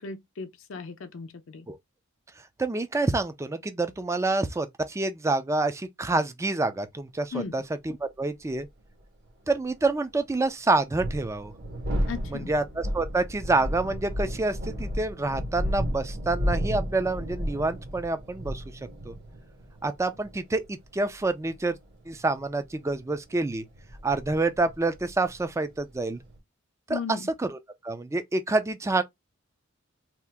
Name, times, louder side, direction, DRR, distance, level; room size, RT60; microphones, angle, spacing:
voice 1, 0.0-1.7 7.3-7.5 12.1-12.5 26.9-27.3, left 5 dB, 70° left, 0.5 m, -36 dB
voice 2, 2.6-7.6 8.0-8.7 9.5-11.5 12.3-18.6 19.0-19.1 19.8-21.8 22.1-23.6 24.0-26.2 26.9-27.6 27.8-29.0, right 2 dB, 15° right, 0.4 m, -27 dB
sound 1, 8.6-8.7 10.8-26.4, equal, 55° right, 1.5 m, -33 dB
2.8 x 2.4 x 3.4 m
head